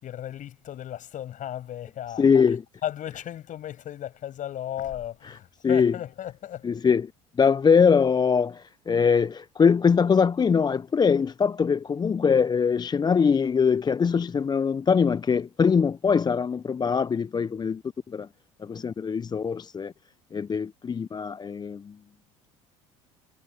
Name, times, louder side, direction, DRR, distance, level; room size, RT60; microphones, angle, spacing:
voice 1, 0.0-2.6 2.8-6.7, left 11 dB, 50° left, 7.3 m, -35 dB
voice 2, 2.2-2.6 5.6-5.9 6.6-7.1 7.4-17.8 18.1-18.3 18.6-19.9 20.3-21.9, left 6 dB, 25° left, 0.7 m, -22 dB
hypercardioid pair, 70°, 17 cm